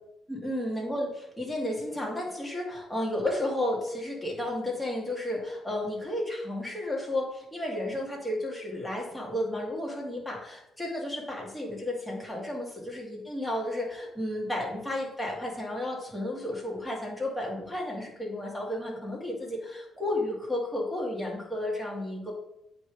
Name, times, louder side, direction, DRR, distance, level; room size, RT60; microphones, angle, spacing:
voice 1, 0.3-22.3, left 1 dB, 5° left, -3 dB, 2.3 m, -32 dB
8.5 x 3.2 x 5.0 m, 0.81 s
cardioid pair, 90°, 0 cm